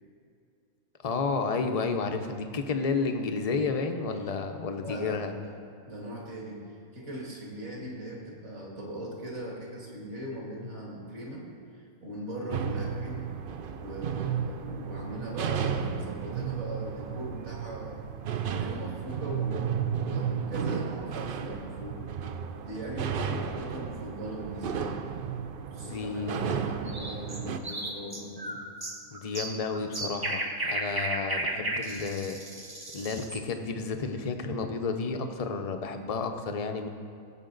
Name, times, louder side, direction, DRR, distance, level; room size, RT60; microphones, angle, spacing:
voice 1, 1.0-5.3 25.8-26.6 29.1-32.4 32.9-36.9, left 4 dB, 45° left, 6 dB, 0.5 m, -31 dB
voice 2, 4.8-5.5 5.9-11.5 11.7-13.3 13.8-18.0 18.5-22.0 22.6-25.1 25.7-28.6, equal, 50° right, -2 dB, 2.3 m, -40 dB
sound 1, 12.5-27.6, right 7 dB, 70° right, 0.5 m, -33 dB
sound 2, 26.9-33.4, right 1 dB, 20° right, 0.6 m, -34 dB
16.5 x 7.6 x 3.9 m, 2.4 s
omnidirectional pair, 1.5 m